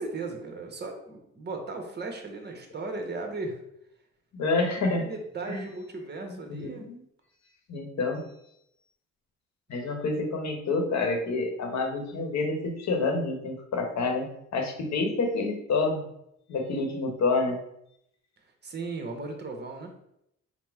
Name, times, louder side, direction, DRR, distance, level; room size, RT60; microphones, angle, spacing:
voice 1, 0.0-3.6 5.0-6.9 18.6-19.9, right 3 dB, 35° right, 4 dB, 0.9 m, -36 dB
voice 2, 4.3-5.1 5.5-5.6 6.3-7.0 7.7-8.2 9.7-16.1 16.5-17.6, left 3 dB, 65° left, 3 dB, 1.0 m, -28 dB
4.1 x 2.1 x 4.5 m, 0.77 s
cardioid pair, 90°, 30 cm